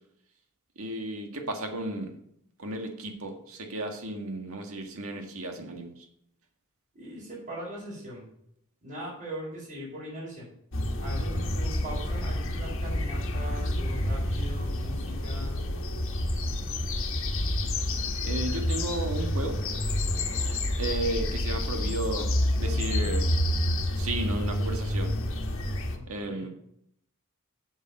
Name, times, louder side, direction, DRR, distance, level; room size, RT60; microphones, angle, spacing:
voice 1, 0.8-2.1 2.6-6.1 18.2-19.6 20.5-22.3 22.6-23.3 24.0-25.1 26.1-26.5, right 1 dB, 75° right, 3 dB, 1.8 m, -34 dB
voice 2, 6.9-8.3 8.8-10.5 11.0-15.6 25.9-26.5, right 1 dB, 40° right, -8 dB, 4.6 m, -40 dB
sound 1, 10.7-26.0, left 1 dB, 65° left, 1.4 m, -29 dB
8.3 x 7.2 x 5.4 m, 0.73 s
head